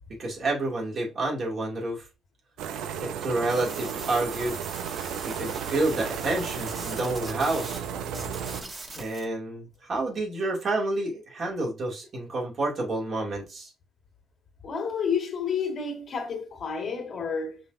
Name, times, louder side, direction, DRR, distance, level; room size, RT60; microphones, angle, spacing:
voice 1, 0.2-2.0 3.0-4.6 5.2-7.8 8.9-13.7, right 2 dB, 50° right, 2.4 m, -29 dB
sound 1, 2.6-8.6, right 8 dB, 90° right, 0.6 m, -34 dB
sound 2, 3.5-7.8 8.1-9.2, right 2 dB, 30° right, 1.6 m, -42 dB
voice 2, 14.6-17.6, left 6 dB, 50° left, 1.8 m, -30 dB
5.3 x 3.7 x 2.6 m
cardioid pair, 90°, 0 cm